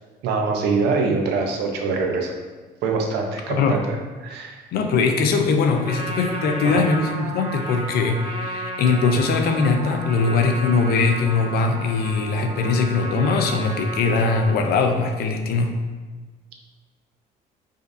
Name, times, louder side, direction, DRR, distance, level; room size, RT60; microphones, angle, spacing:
voice 1, 0.2-2.3 2.8-4.6 6.6-6.9, right 4 dB, 80° right, 1 dB, 0.6 m, -24 dB
voice 2, 3.5-3.9 4.7-15.8, left 4 dB, 70° left, 5 dB, 0.5 m, -21 dB
Trumpet, 5.7-14.7, right 1 dB, 30° right, 0.7 m, -33 dB
4.9 x 2.6 x 2.6 m, 1.4 s
cardioid pair, 110°, 17 cm